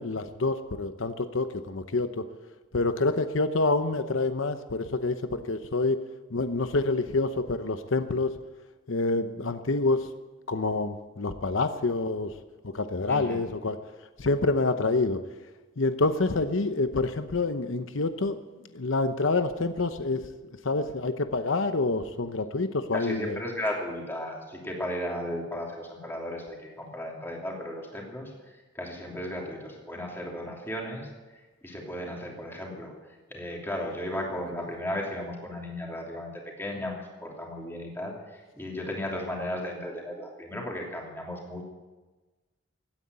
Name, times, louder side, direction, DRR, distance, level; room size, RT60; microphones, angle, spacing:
voice 1, 0.0-2.3 2.7-6.0 6.3-8.3 8.9-10.1 10.5-12.3 12.6-13.8 14.2-15.2 15.8-18.4 18.7-20.2 20.6-23.4, left 3 dB, 90° left, 9 dB, 0.9 m, -27 dB
voice 2, 13.1-13.4 22.9-41.6, left 1 dB, 10° left, -1 dB, 3.0 m, -35 dB
16.5 x 9.6 x 8.2 m, 1.2 s
head